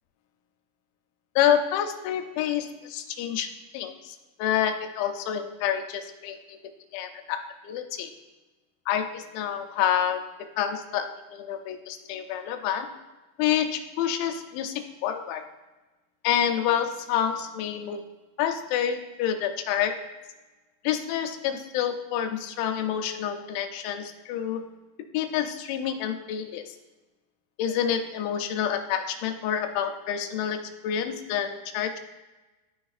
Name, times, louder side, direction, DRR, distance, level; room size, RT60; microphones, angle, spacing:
voice 1, 1.4-3.5 3.7-6.6 6.9-7.4 7.6-8.1 8.9-10.2 10.6-12.9 13.4-15.4 16.2-18.0 18.4-20.0 20.8-24.6 25.1-26.8 27.6-32.0, left 9 dB, 85° left, 6 dB, 2.8 m, -28 dB
12.0 x 4.1 x 2.4 m, 1.1 s
omnidirectional pair, 5.2 m